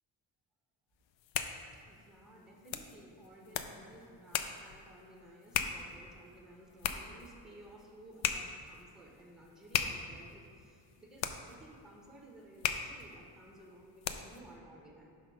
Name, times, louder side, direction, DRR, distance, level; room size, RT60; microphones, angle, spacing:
sound 1, 1.0-14.5, left 8 dB, 85° left, 0.6 m, -39 dB
voice 1, 1.8-15.1, right 1 dB, ahead, 0 dB, 1.0 m, -56 dB
5.8 x 4.8 x 5.7 m, 2.4 s
cardioid pair, 135°, 44 cm